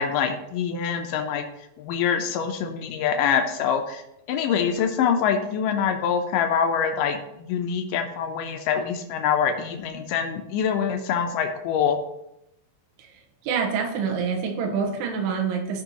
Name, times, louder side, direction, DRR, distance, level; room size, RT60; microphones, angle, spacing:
voice 1, 0.0-1.5 1.8-4.0 4.3-12.0, left 7 dB, 85° left, 4 dB, 1.9 m, -25 dB
voice 2, 13.4-15.8, right 6 dB, 75° right, 1 dB, 3.2 m, -26 dB
14.5 x 5.5 x 2.9 m, 0.84 s
omnidirectional pair, 4.8 m